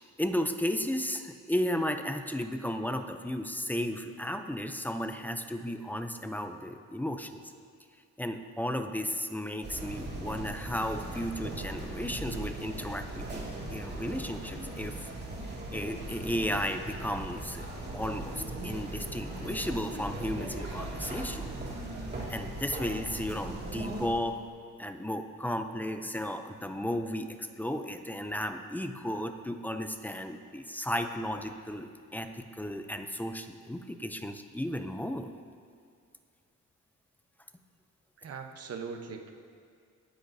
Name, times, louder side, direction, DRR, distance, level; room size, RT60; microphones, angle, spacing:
voice 1, 0.2-7.4 8.2-15.1 15.7-17.7 17.9-21.5 22.3-24.4 24.8-35.3, left 1 dB, 5° left, 7 dB, 0.4 m, -34 dB
sound 1, 9.6-24.1, right 2 dB, 30° right, 2.1 m, -39 dB
voice 2, 38.2-39.3, right 5 dB, 50° right, 4 dB, 0.9 m, -40 dB
20.0 x 10.0 x 2.7 m, 2.2 s
wide cardioid pair, 170°, 32 cm